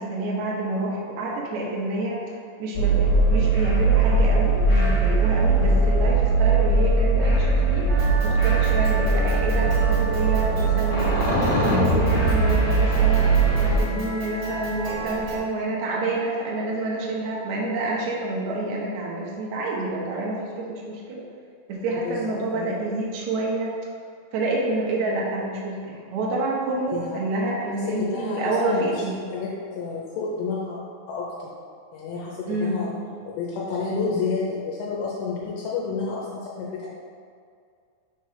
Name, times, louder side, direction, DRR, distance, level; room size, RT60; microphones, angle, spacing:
voice 1, 0.0-2.2 2.6-21.2 21.7-23.7 24.3-29.2 32.5-32.8, right 2 dB, 80° right, -4 dB, 1.6 m, -28 dB
sound 1, 2.7-13.8, right 3 dB, 60° left, 1.7 m, -20 dB
sound 2, 7.9-15.4, right 1 dB, 60° right, 1.0 m, -34 dB
voice 2, 22.0-22.8 26.9-27.2 27.7-29.0 29.3-30.8 31.1-31.5 31.9-32.9 33.3-36.9, left 4 dB, 80° left, -5 dB, 2.7 m, -30 dB
6.2 x 3.3 x 5.6 m, 2.2 s
omnidirectional pair, 4.6 m